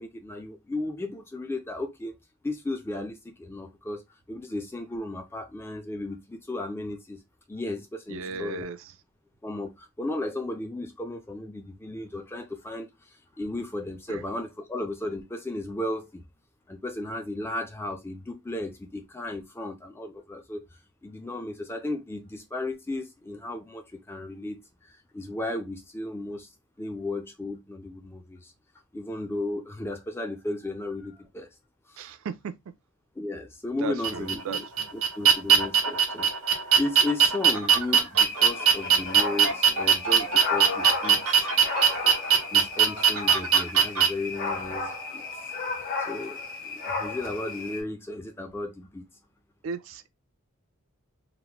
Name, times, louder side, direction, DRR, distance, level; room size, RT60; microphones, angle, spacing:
voice 1, 0.0-2.1 2.4-4.0 4.3-7.2 7.5-8.7 9.4-16.2 16.7-26.5 26.8-28.5 28.9-31.6 31.9-32.0 33.2-34.7 34.9-41.5 42.5-45.5 46.1-49.1, left 2 dB, 10° left, 0.3 m, -35 dB
voice 2, 8.1-8.8 14.1-14.2 32.0-32.5 33.8-34.9 49.6-50.1, right 5 dB, 65° right, 0.3 m, -35 dB
sound 1, 34.0-44.1, right 7 dB, 85° right, 0.9 m, -21 dB
sound 2, 38.2-47.8, left 4 dB, 40° left, 0.9 m, -34 dB
3.0 x 2.1 x 2.9 m
head